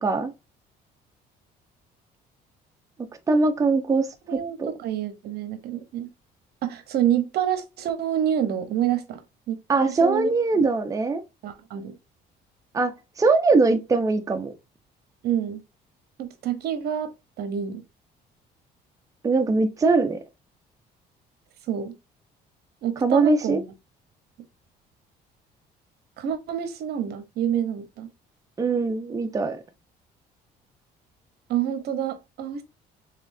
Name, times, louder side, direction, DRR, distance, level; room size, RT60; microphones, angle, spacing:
voice 1, 0.0-0.3 3.3-4.1 4.6-4.7 9.7-11.2 12.7-14.5 19.2-20.2 23.0-23.6 28.6-29.6, right 3 dB, 20° right, 0.7 m, -21 dB
voice 2, 4.3-6.1 6.6-9.2 9.5-10.3 11.4-12.0 15.2-15.6 16.2-17.8 21.7-21.9 22.8-23.6 26.2-28.1 31.5-32.6, right 10 dB, 70° right, 0.9 m, -27 dB
4.3 x 3.6 x 2.6 m
cardioid pair, 110°, 17 cm